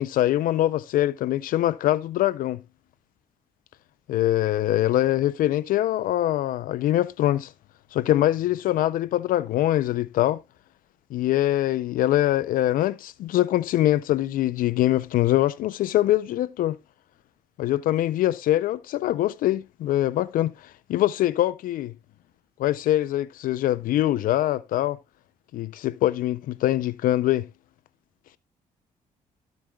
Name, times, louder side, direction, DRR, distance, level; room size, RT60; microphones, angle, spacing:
voice 1, 0.0-2.6 4.1-7.5 7.9-10.4 11.1-16.8 17.6-21.9 22.6-25.0 25.5-27.4, left 14 dB, 70° left, 0.5 m, -23 dB
13.0 x 7.9 x 2.2 m
supercardioid pair, 60°, 15 cm